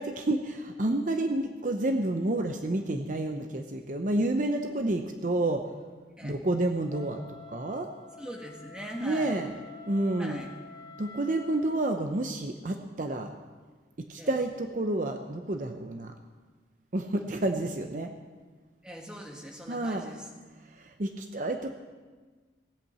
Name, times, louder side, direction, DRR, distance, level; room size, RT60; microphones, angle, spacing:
voice 1, 0.0-5.7 6.2-7.2 7.5-7.9 9.0-9.5 9.9-10.4 11.0-13.3 14.0-16.1 16.9-18.1 19.7-20.0 20.7-21.7, right 2 dB, 45° right, 5 dB, 0.7 m, -29 dB
Wind instrument woodwind instrument, 6.9-11.9, left 4 dB, 25° left, 0.7 m, -49 dB
voice 2, 8.2-9.4 10.2-10.5 14.2-14.4 18.8-20.3, equal, 5° right, 1 dB, 1.6 m, -41 dB
16.0 x 8.3 x 7.6 m, 1.4 s
head